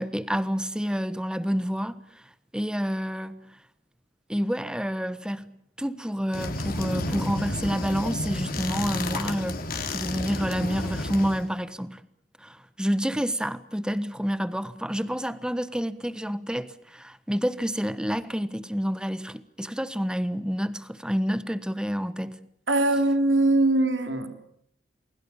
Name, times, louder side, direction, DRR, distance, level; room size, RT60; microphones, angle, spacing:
voice 1, 0.0-2.0 2.5-3.4 4.3-5.5 5.8-9.6 9.9-12.0 12.4-22.4, equal, 5° right, 1.3 m, -28 dB
sound 1, 6.3-11.5, left 2 dB, 50° left, 3.5 m, -31 dB
voice 2, 22.7-24.3, right 2 dB, 80° right, 3.4 m, -22 dB
29.5 x 20.5 x 7.2 m
head